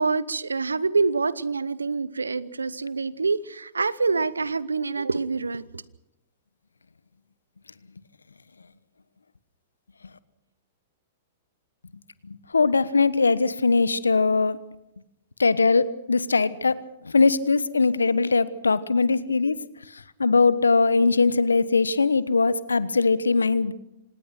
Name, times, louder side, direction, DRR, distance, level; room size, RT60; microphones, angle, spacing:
voice 1, 0.0-5.8, right 4 dB, 85° right, 0.9 m, -26 dB
voice 2, 12.5-14.6 15.4-16.8 17.1-19.6 20.2-23.7, left 4 dB, 85° left, 1.2 m, -21 dB
26.0 x 19.0 x 6.0 m
hypercardioid pair, 105°, 0 cm